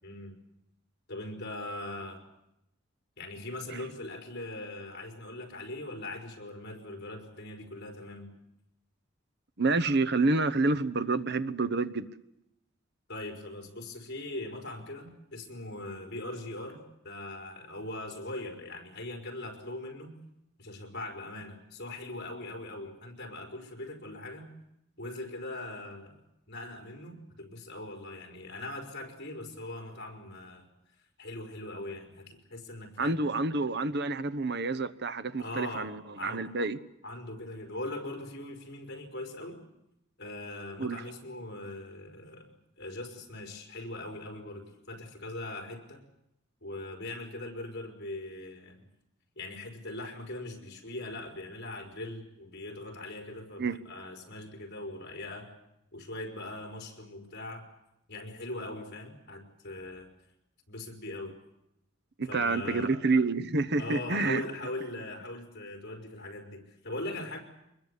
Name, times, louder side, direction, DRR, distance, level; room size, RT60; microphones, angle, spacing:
voice 1, 0.0-0.4 1.1-2.2 3.2-8.3 13.1-20.2 20.6-24.5 25.0-26.2 26.5-30.7 31.2-33.2 35.4-36.4 37.0-39.6 40.2-46.0 46.6-48.8 49.4-55.5 55.9-57.7 58.1-60.1 60.7-61.4 62.3-63.0 63.8-67.4, left 2 dB, 55° left, 2 dB, 4.9 m, -41 dB
voice 2, 9.6-12.1 33.0-36.8 40.8-41.0 53.6-53.8 62.2-64.4, right 3 dB, 55° right, 13 dB, 1.0 m, -28 dB
24.0 x 21.5 x 8.3 m, 0.84 s
head